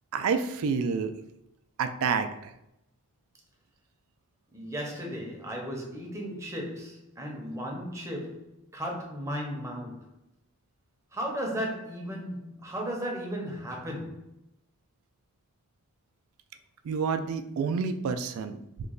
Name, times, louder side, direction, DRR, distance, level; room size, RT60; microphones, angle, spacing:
voice 1, 0.1-1.1 1.8-2.3 16.9-18.9, right 5 dB, 70° right, 0.3 m, -28 dB
voice 2, 4.5-10.1 11.1-14.3, equal, 15° right, 0.6 m, -35 dB
3.0 x 2.2 x 3.7 m
head